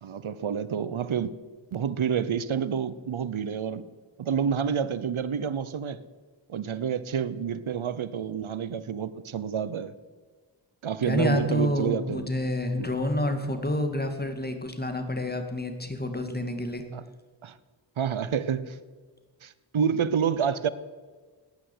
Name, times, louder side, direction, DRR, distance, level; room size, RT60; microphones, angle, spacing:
voice 1, 0.0-1.3 1.7-3.8 4.2-6.0 6.5-9.9 10.8-12.3 12.8-12.9 16.9-17.0 17.4-17.6 18.0-18.8 19.4-20.7, right 7 dB, 75° right, 16 dB, 0.9 m, -28 dB
voice 2, 11.0-16.8, left 1 dB, 20° left, 6 dB, 2.3 m, -28 dB
18.0 x 10.5 x 7.9 m, 1.4 s
wide cardioid pair, 65°, 49 cm